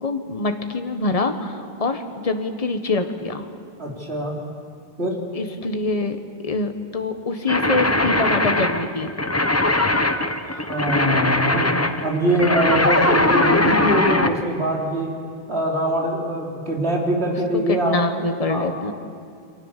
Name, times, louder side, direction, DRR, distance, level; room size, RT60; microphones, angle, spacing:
voice 1, 0.0-3.5 5.3-6.2 6.4-9.1 17.7-18.9, left 3 dB, 35° left, 6 dB, 1.5 m, -25 dB
voice 2, 3.8-4.4 5.0-5.2 10.4-11.7 12.0-15.1 15.5-18.0 18.5-18.9, right 1 dB, 85° right, -1 dB, 4.3 m, -23 dB
sound 1, 7.5-14.4, left 1 dB, 15° left, 1.0 m, -20 dB
29.0 x 23.5 x 7.5 m, 2.3 s
omnidirectional pair, 1.1 m